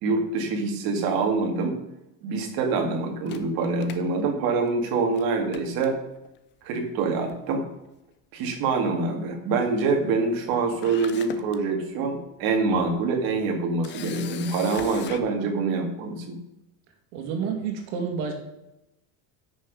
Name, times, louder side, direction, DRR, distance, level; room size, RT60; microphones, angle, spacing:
voice 1, 0.0-1.8 2.2-6.0 6.6-7.6 8.3-16.4, right 4 dB, 50° right, 3 dB, 2.1 m, -25 dB
Camera, 3.3-4.8 5.1-5.2 5.5-6.4 7.3-7.6 7.8-7.9 10.4-10.5 10.8-11.6 12.1-12.3 13.8-15.2, left 9 dB, 25° left, 0.5 m, -41 dB
voice 2, 17.1-18.3, right 6 dB, 75° right, 3 dB, 2.2 m, -29 dB
9.8 x 6.3 x 5.2 m, 0.92 s
cardioid pair, 170°, 45 cm